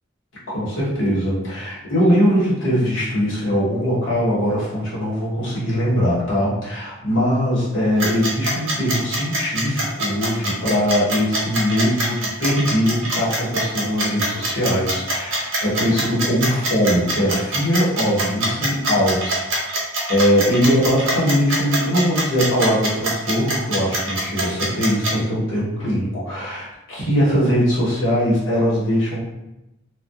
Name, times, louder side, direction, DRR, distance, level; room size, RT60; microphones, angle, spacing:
voice 1, 0.5-19.6 20.1-29.2, equal, 75° left, -7 dB, 1.1 m, -21 dB
sound 1, 8.0-25.1, right 1 dB, 80° right, 0.7 m, -24 dB
2.6 x 2.4 x 2.4 m, 0.93 s
head